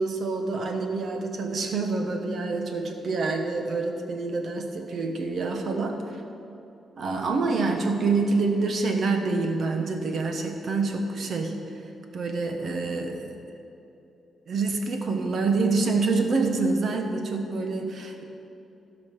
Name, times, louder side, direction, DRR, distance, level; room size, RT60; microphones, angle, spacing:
voice 1, 0.0-6.0 7.0-11.5 12.1-13.3 14.5-18.2, right 3 dB, 55° right, 4 dB, 1.1 m, -26 dB
15.5 x 5.3 x 6.0 m, 2.9 s
cardioid pair, 115°, 0 cm